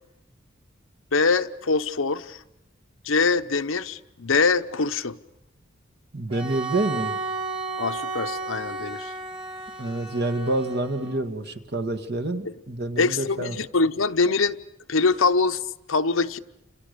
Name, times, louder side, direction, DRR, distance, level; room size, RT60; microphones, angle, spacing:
voice 1, 1.1-2.4 3.0-5.2 7.8-9.1 12.4-12.5 13.0-14.6 14.9-15.6 15.9-16.4, left 4 dB, 85° left, 0.9 m, -23 dB
voice 2, 6.1-7.2 9.8-13.6, right 2 dB, 55° right, 2.0 m, -27 dB
Bowed string instrument, 6.3-11.3, right 3 dB, 25° right, 2.7 m, -33 dB
30.0 x 27.5 x 6.8 m
head